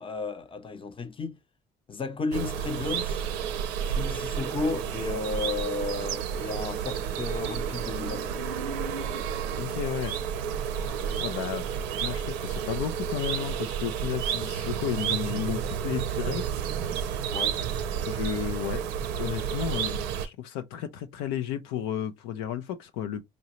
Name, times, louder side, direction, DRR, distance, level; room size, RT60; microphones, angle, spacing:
voice 1, 0.0-1.4 1.9-3.2 3.9-8.5 17.3-17.6, left 3 dB, 30° left, 0.8 m, -33 dB
sound 1, 2.3-20.3, right 8 dB, 90° right, 0.5 m, -31 dB
voice 2, 9.6-10.1 11.2-11.7 12.0-16.4 18.1-18.8 19.2-23.2, left 10 dB, 90° left, 0.5 m, -33 dB
5.2 x 2.7 x 2.9 m
supercardioid pair, 60°, 17 cm